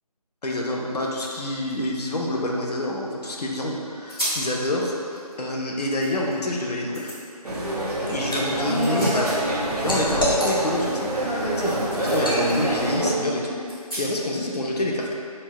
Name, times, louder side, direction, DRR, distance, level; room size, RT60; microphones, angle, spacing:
voice 1, 0.4-7.1 8.1-9.3 9.8-13.6 14.0-15.1, left 1 dB, 85° left, -1 dB, 0.7 m, -27 dB
sound 1, 0.6-0.7 1.0-3.2 3.6-3.7 4.1-4.5 5.0-6.4 6.9-7.2 8.5-9.7 9.9-11.7 12.0-12.2 12.7-12.8 13.7-14.4, equal, 5° left, 0.8 m, -36 dB
sound 2, 7.4-13.1, right 1 dB, 80° right, 0.9 m, -26 dB
Liquid, 7.6-8.4 8.8-10.9 11.4-11.6 12.1-12.4, left 1 dB, 35° left, 0.7 m, -28 dB
4.3 x 2.1 x 4.2 m, 2.6 s
figure-of-eight pair, 170°, 20 cm